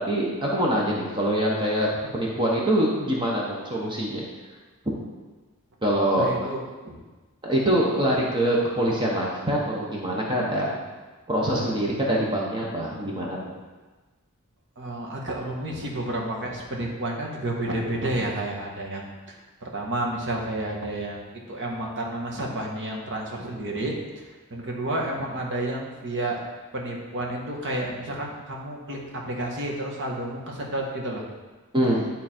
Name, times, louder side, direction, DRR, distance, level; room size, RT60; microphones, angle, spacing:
voice 1, 0.1-1.9 2.1-4.2 5.8-6.3 7.4-10.8 11.3-13.5 31.7-32.1, right 1 dB, 20° right, -3 dB, 1.0 m, -24 dB
voice 2, 6.2-7.0 14.8-21.2 21.5-24.2 24.5-26.4 26.7-31.2, right 1 dB, 55° right, -1 dB, 1.5 m, -31 dB
11.0 x 3.9 x 4.4 m, 1.3 s
head